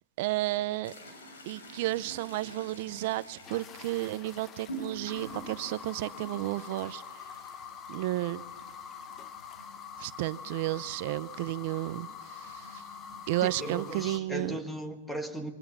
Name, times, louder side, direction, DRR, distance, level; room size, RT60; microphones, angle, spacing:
voice 1, 0.2-0.9 1.5-7.3 7.9-8.4 10.0-12.8 13.3-14.6, right 17 dB, 55° right, 0.6 m, -32 dB
sound 1, 0.8-14.6, right 1 dB, 90° left, 7.4 m, -49 dB
sound 2, 3.4-14.2, left 7 dB, 25° left, 1.0 m, -45 dB
voice 2, 13.4-15.5, equal, 5° left, 1.7 m, -37 dB
24.5 x 21.5 x 7.2 m
hypercardioid pair, 145°, 0 cm